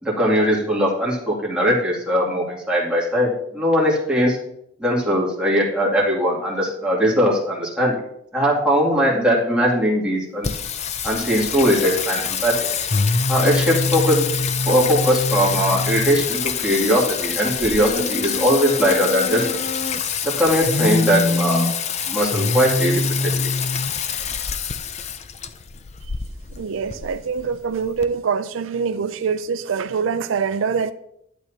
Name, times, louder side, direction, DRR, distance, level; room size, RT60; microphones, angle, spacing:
voice 1, 0.0-4.4 4.8-8.0 8.3-10.5 11.0-12.7 13.3-14.2 14.7-19.6 20.2-21.7 22.1-23.5, equal, 5° right, 2.5 m, -20 dB
Singing, 10.4-28.0, left 5 dB, 35° left, 0.5 m, -24 dB
voice 2, 26.6-30.9, right 5 dB, 85° right, 0.4 m, -24 dB
11.5 x 8.2 x 2.8 m
head